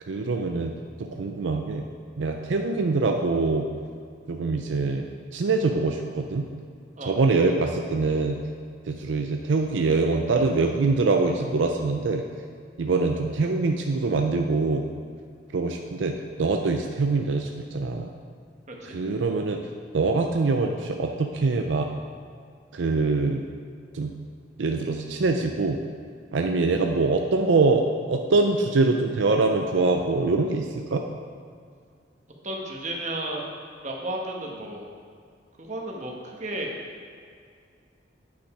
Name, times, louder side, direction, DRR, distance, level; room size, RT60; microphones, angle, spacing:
voice 1, 0.1-0.7 1.0-1.8 2.2-3.7 4.3-5.1 5.3-6.5 7.0-8.4 8.9-12.2 12.8-14.8 15.5-18.1 18.8-19.6 19.9-21.9 22.7-23.4 23.9-24.1 24.6-25.8 26.3-31.0, right 3 dB, 75° right, 3 dB, 0.5 m, -24 dB
voice 2, 18.7-19.0 32.4-33.5 33.8-34.9 35.6-36.7, right 1 dB, 40° right, 0 dB, 1.1 m, -33 dB
8.8 x 5.9 x 4.8 m, 2.2 s
head